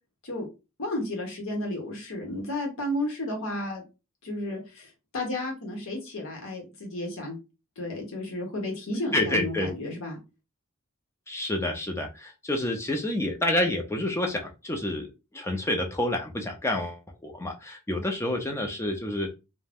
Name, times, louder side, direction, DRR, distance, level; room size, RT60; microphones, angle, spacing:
voice 1, 0.8-3.8 4.2-7.4 7.8-10.2, left 1 dB, 65° left, 1 dB, 0.8 m, -32 dB
voice 2, 9.1-9.7 11.3-19.3, left 1 dB, 10° left, 2 dB, 0.4 m, -29 dB
2.4 x 2.1 x 3.4 m, 0.28 s
head